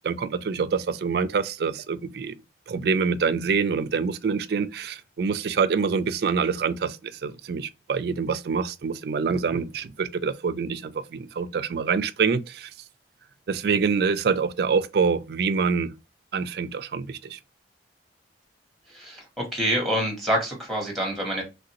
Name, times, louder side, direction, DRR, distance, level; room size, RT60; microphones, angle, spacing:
voice 1, 0.0-2.4 2.7-7.0 7.2-12.7 13.5-15.9 16.3-17.4, right 5 dB, 55° right, 0.3 m, -26 dB
voice 2, 18.9-21.4, equal, ahead, 1.1 m, -27 dB
3.1 x 2.5 x 2.8 m
head